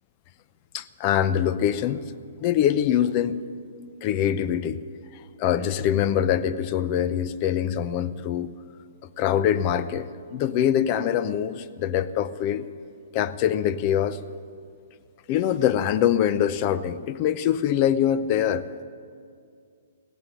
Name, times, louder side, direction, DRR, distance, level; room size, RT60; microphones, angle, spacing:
voice 1, 0.7-2.0 2.4-3.4 4.0-4.8 5.1-8.5 9.0-12.7 13.1-14.2 15.3-18.7, left 10 dB, 40° left, 14 dB, 0.6 m, -24 dB
16.0 x 8.8 x 9.9 m, 2.2 s
hypercardioid pair, 130°, 0 cm